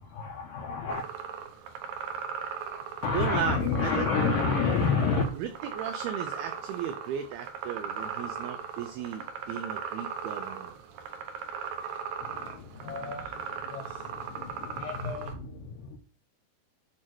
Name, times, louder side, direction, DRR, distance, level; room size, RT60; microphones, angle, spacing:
voice 1, 0.1-1.0 3.0-5.2 12.4-13.3 13.7-13.8 14.3-16.0, left 5 dB, 80° left, 2 dB, 2.0 m, -29 dB
sound 1, 0.9-15.3, right 7 dB, 70° right, 2.4 m, -38 dB
voice 2, 3.1-4.1 5.3-10.7, right 9 dB, 85° right, 9 dB, 2.2 m, -35 dB
8.6 x 3.8 x 6.1 m, 0.37 s
omnidirectional pair, 5.2 m